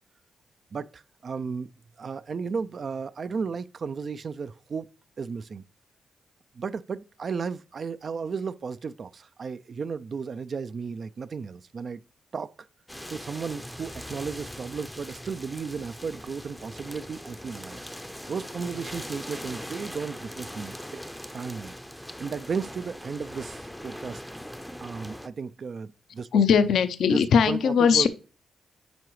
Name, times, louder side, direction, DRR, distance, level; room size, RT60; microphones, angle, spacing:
voice 1, 0.7-1.7 2.0-4.9 5.2-5.6 6.6-12.0 12.3-12.5 13.1-17.8 18.3-21.0 21.3-21.8 22.2-24.2 24.8-26.3 27.1-28.1, right 5 dB, 55° right, 0.3 m, -34 dB
sound 1, 12.9-25.3, equal, 5° left, 0.5 m, -41 dB
voice 2, 26.3-28.1, left 6 dB, 75° left, 0.5 m, -20 dB
10.5 x 3.8 x 3.1 m
cardioid pair, 70°, 0 cm